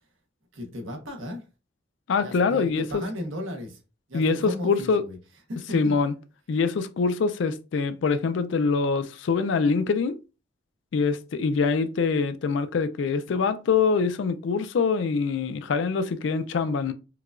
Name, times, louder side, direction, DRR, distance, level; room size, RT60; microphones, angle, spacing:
voice 1, 0.5-1.4 2.2-3.8 4.1-5.2 5.5-5.9, left 1 dB, 75° right, 0.9 m, -35 dB
voice 2, 2.1-3.0 4.1-5.0 5.7-6.1 6.5-10.1 10.9-16.9, left 5 dB, 65° left, 0.3 m, -24 dB
4.7 x 2.3 x 2.4 m
head